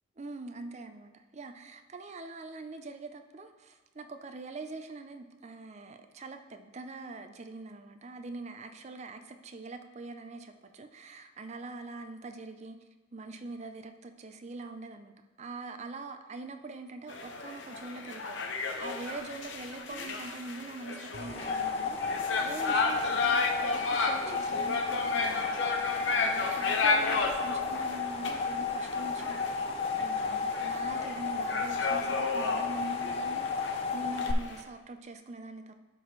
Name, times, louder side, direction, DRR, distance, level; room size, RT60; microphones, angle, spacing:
voice 1, 0.2-12.8 13.1-18.4 18.8-35.7, right 3 dB, 35° right, 7 dB, 0.5 m, -43 dB
sound 1, 17.1-34.6, left 3 dB, 65° left, 0.7 m, -33 dB
sound 2, 21.1-34.3, left 5 dB, 30° left, 0.3 m, -33 dB
11.5 x 4.1 x 3.2 m, 1.2 s
head